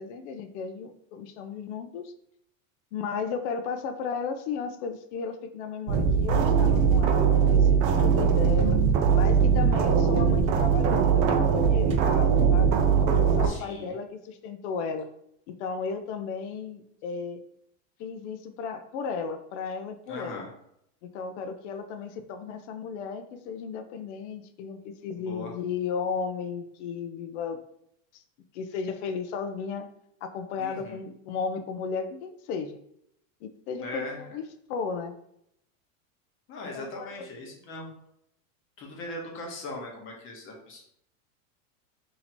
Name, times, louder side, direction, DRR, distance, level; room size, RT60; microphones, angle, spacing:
voice 1, 0.0-2.1 2.9-8.8 9.1-15.1 15.5-17.4 18.0-20.4 21.0-27.6 28.1-28.2 28.5-29.9 30.2-32.8 33.4-34.4 34.7-35.1 36.7-37.3, left 5 dB, 60° left, 7 dB, 0.5 m, -34 dB
sound 1, 5.9-13.5, right 6 dB, 40° right, 0.4 m, -21 dB
voice 2, 13.4-13.9 20.1-20.5 25.3-25.5 30.6-31.0 33.8-34.2 36.5-37.9 38.8-40.8, left 2 dB, 30° left, 0 dB, 1.0 m, -39 dB
2.8 x 2.8 x 4.3 m, 0.74 s
supercardioid pair, 145°, 41 cm